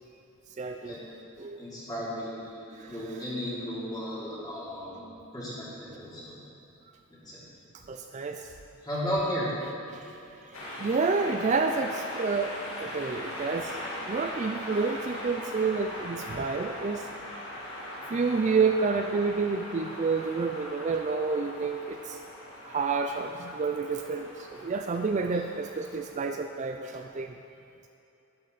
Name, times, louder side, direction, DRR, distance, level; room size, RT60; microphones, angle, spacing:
voice 1, 0.6-0.9 1.4-1.6 2.8-2.9 7.9-8.5 9.9-10.2 10.5-17.1 18.1-22.2 22.6-27.3, right 4 dB, 35° right, 5 dB, 0.3 m, -29 dB
voice 2, 1.6-5.0 5.3-6.3 7.1-7.4 8.8-9.5, equal, 20° left, -9 dB, 3.1 m, -34 dB
sound 1, 10.5-26.1, left 1 dB, 60° left, 2.0 m, -40 dB
12.0 x 11.5 x 4.1 m, 2.8 s
head